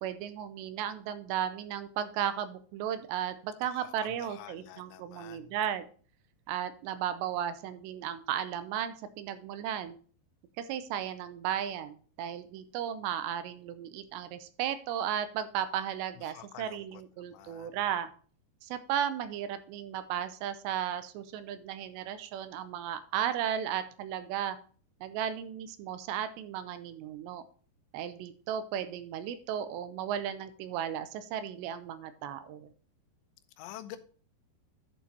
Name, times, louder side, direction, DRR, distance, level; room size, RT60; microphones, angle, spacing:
voice 1, 0.0-5.9 6.5-10.0 10.6-18.1 18.6-24.6 25.0-27.4 27.9-32.7, right 9 dB, 85° right, 11 dB, 2.9 m, -35 dB
voice 2, 3.7-5.5 16.2-17.8 33.6-34.0, left 12 dB, 85° left, 10 dB, 2.9 m, -49 dB
11.5 x 7.2 x 2.8 m, 0.42 s
omnidirectional pair, 5.1 m